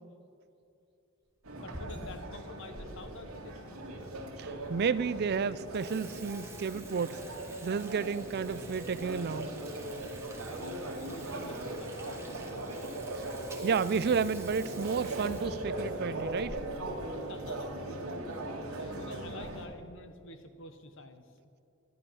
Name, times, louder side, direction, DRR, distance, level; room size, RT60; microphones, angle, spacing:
Water tap faucet / Sink (filling or washing), 1.4-2.9 3.4-3.5 4.2-4.3 4.6-4.7 5.1-5.3 5.6-17.0 17.3-17.4 17.7-17.8 18.6-18.9 19.3-19.7, right 2 dB, 15° right, 1.4 m, -49 dB
sound 1, 1.4-19.7, right 1 dB, 85° right, 2.0 m, -39 dB
voice 1, 1.6-3.8 10.5-12.2 17.3-18.0 18.7-21.2, left 2 dB, 60° left, 1.0 m, -48 dB
voice 2, 4.4-7.2 7.6-9.5 13.6-16.6, right 5 dB, 50° right, 0.4 m, -31 dB
11.5 x 11.0 x 6.3 m
head